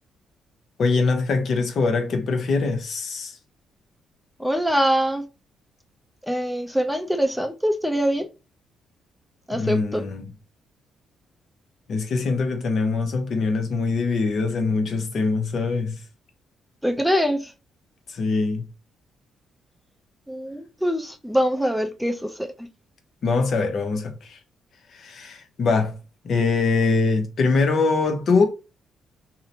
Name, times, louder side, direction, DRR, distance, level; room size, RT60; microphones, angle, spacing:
voice 1, 0.8-3.4 9.5-10.3 11.9-16.0 18.1-18.6 23.2-24.4 24.9-26.0 26.2-28.4, left 4 dB, 60° left, 0.7 m, -23 dB
voice 2, 4.4-5.3 6.3-8.3 9.5-10.0 16.8-17.5 20.3-22.5, equal, ahead, 0.5 m, -23 dB
2.7 x 2.1 x 2.7 m
cardioid pair, 90°, 0 cm